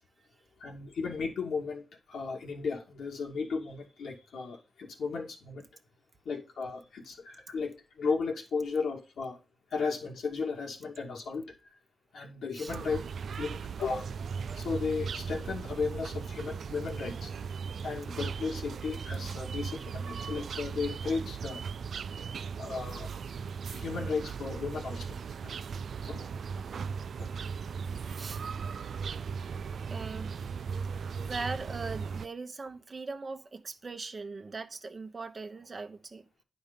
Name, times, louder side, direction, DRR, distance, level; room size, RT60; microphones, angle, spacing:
voice 1, 0.6-5.6 6.2-9.4 9.7-11.8 12.1-13.0 13.4-14.1 14.5-17.3 17.8-21.6 22.6-23.1 23.7-25.2 25.4-25.5 26.0-26.4 27.2-27.3, left 4 dB, 75° left, 2.3 m, -35 dB
sound 1, 12.7-32.3, right 6 dB, 65° right, 0.4 m, -37 dB
voice 2, 29.9-30.3 31.0-36.4, right 3 dB, 35° right, 1.1 m, -40 dB
9.7 x 5.3 x 5.2 m
cardioid pair, 80°, 0 cm